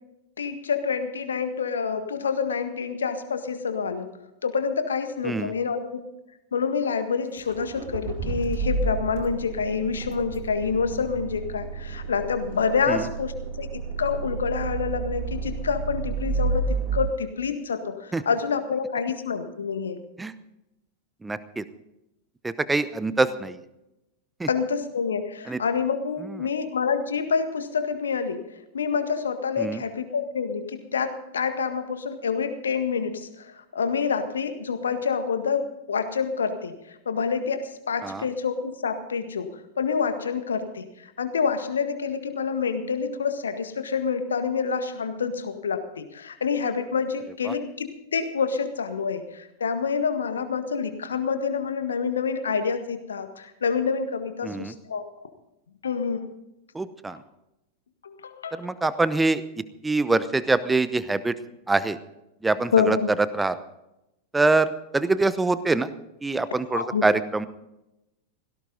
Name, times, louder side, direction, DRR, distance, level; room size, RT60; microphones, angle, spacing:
voice 1, 0.4-4.1 4.4-6.0 6.5-20.0 24.5-28.5 28.7-55.1 55.8-56.3 58.0-58.9 62.7-63.1 66.7-67.1, left 5 dB, 70° left, 9 dB, 1.7 m, -27 dB
Accelerating revving vroom, 7.4-17.0, right 4 dB, 50° right, 2.2 m, -31 dB
voice 2, 21.2-21.6 22.4-23.6 24.4-24.5 25.5-25.6 29.6-29.8 38.0-38.2 54.4-54.7 56.7-57.2 58.5-59.4 59.8-61.3 61.7-62.0 62.4-63.0 63.3-63.6 64.3-65.9 66.2-67.5, right 3 dB, 10° right, 15 dB, 0.8 m, -24 dB
17.5 x 17.0 x 4.0 m, 0.90 s
figure-of-eight pair, 90°, 0 cm